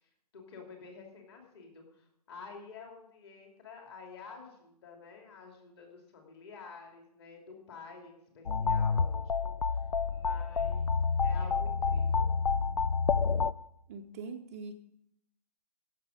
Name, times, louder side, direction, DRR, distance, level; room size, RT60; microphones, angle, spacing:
voice 1, 0.3-9.5 10.1-10.9 11.2-12.3, left 4 dB, 40° left, 1 dB, 2.8 m, -50 dB
sound 1, 8.5-13.5, left 5 dB, 75° left, 0.5 m, -29 dB
voice 2, 13.9-14.7, right 4 dB, 25° right, 2 dB, 0.5 m, -42 dB
16.0 x 7.3 x 5.0 m, 0.76 s
figure-of-eight pair, 135°, 21 cm